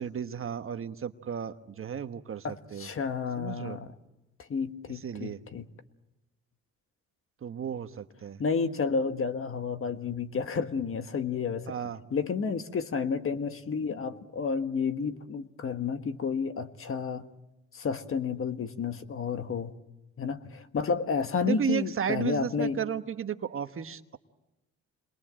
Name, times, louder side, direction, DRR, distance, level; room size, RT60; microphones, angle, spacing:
voice 1, 0.0-2.9 3.4-3.8 5.0-5.4 7.4-8.4 11.7-12.0 21.4-24.2, right 8 dB, 45° right, 9 dB, 1.2 m, -33 dB
voice 2, 2.4-3.9 4.5-5.6 8.4-11.7 12.1-17.2 17.7-19.7 20.2-22.8, left 5 dB, 45° left, 9 dB, 1.6 m, -31 dB
27.5 x 21.5 x 7.6 m, 0.99 s
cardioid pair, 90°, 30 cm